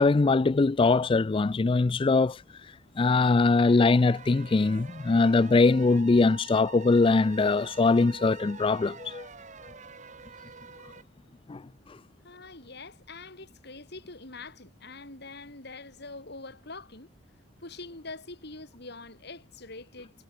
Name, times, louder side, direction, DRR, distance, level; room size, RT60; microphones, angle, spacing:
voice 1, 0.0-2.4 3.0-9.3 11.5-11.6, left 3 dB, 25° left, 0.4 m, -22 dB
sound 1, 3.7-11.0, right 5 dB, 40° right, 1.6 m, -47 dB
voice 2, 12.2-17.1 17.6-20.2, left 3 dB, 55° left, 4.4 m, -44 dB
head